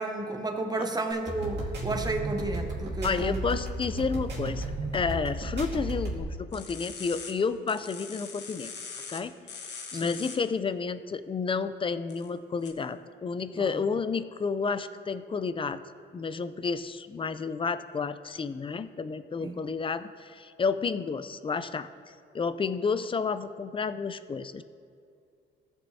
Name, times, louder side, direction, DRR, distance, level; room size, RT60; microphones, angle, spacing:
voice 1, 0.0-3.5 9.9-10.1 13.5-13.8 19.4-19.6, right 2 dB, 20° right, 5 dB, 1.0 m, -32 dB
sound 1, 1.1-6.2, right 2 dB, 60° right, 2.4 m, -33 dB
voice 2, 3.0-4.7 4.9-8.7 9.1-9.3 9.9-15.8 16.1-21.9 22.3-24.6, left 5 dB, 25° left, 12 dB, 0.4 m, -31 dB
sound 2, 6.5-7.3 7.7-9.2 9.5-10.4 12.1-12.3 12.6-12.7, left 5 dB, 60° left, 1.2 m, -41 dB
15.5 x 7.0 x 2.7 m, 2.4 s
cardioid pair, 90°, 20 cm